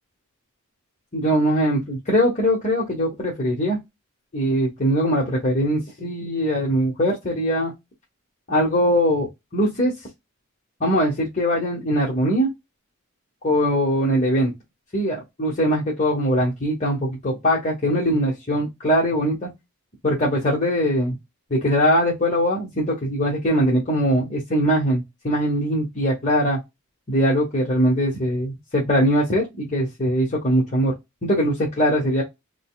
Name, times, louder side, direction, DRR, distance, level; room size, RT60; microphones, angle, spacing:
voice 1, 1.1-3.8 4.3-7.7 8.5-9.9 10.8-12.5 13.4-14.5 14.9-19.5 20.0-21.2 21.5-26.6 27.1-30.9 31.2-32.2, equal, 35° left, 1.2 m, -21 dB
5.2 x 2.2 x 2.3 m
head